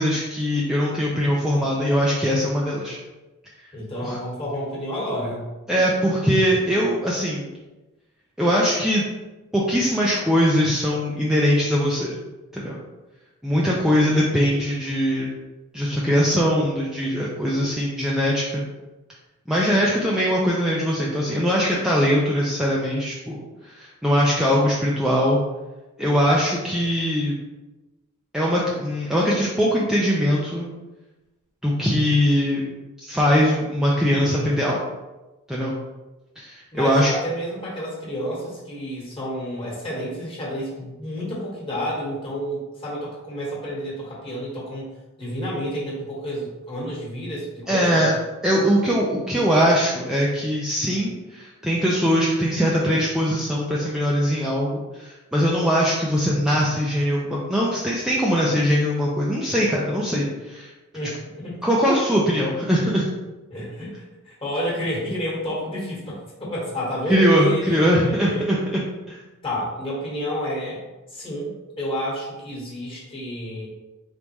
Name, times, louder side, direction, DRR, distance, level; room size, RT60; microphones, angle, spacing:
voice 1, 0.0-3.0 4.0-4.2 5.7-7.5 8.4-9.1 9.5-12.2 12.5-12.8 13.4-15.3 15.7-18.6 19.5-25.4 26.0-27.4 28.3-30.7 31.6-32.6 33.0-34.8 35.5-35.7 36.4-37.1 47.7-48.1 48.4-60.7 61.6-63.1 67.1-68.8 69.1-69.2, equal, 5° right, -5 dB, 0.4 m, -21 dB
voice 2, 3.7-5.5 36.7-44.9 45.2-48.0 60.9-61.6 63.5-68.5 69.4-70.8 71.1-73.7, equal, 25° left, -5 dB, 1.4 m, -30 dB
4.0 x 3.5 x 3.0 m, 1.1 s
head